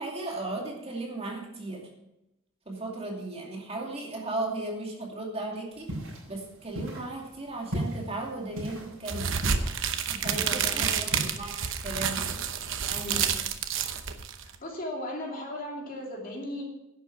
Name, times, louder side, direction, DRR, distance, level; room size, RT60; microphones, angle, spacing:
voice 1, 0.0-1.8 2.7-9.4 10.1-12.4, right 2 dB, 30° right, -1 dB, 2.5 m, -36 dB
sound 1, 5.7-11.2, equal, 80° right, 5.4 m, -38 dB
sound 2, 9.1-14.6, right 7 dB, 65° right, 0.9 m, -29 dB
voice 2, 10.2-11.3 12.9-13.4 14.6-16.6, left 1 dB, 45° left, -1 dB, 2.9 m, -37 dB
11.0 x 8.3 x 6.0 m, 0.90 s
head